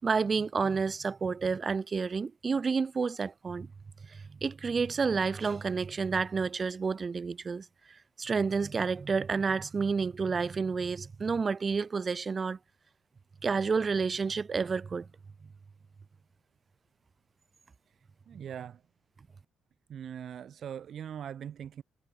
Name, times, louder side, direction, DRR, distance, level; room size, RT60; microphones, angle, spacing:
voice 1, 0.0-3.7 4.1-7.7 8.2-12.6 13.4-15.1 18.3-18.4, right 5 dB, 35° right, 7.0 m, -30 dB
voice 2, 18.3-18.8 19.9-21.8, right 9 dB, 60° right, 7.6 m, -41 dB
cardioid pair, 90°, 0 cm